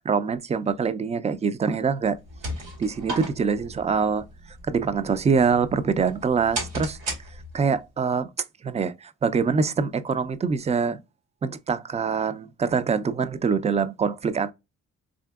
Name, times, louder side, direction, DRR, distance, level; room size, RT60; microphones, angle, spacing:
voice 1, 0.1-2.2 2.8-4.2 4.7-7.0 7.5-8.3 8.6-11.0 11.4-14.5, right 5 dB, 25° right, 0.4 m, -24 dB
sound 1, 2.1-7.8, right 1 dB, 80° right, 2.3 m, -36 dB
3.7 x 3.3 x 2.3 m
cardioid pair, 90°, 30 cm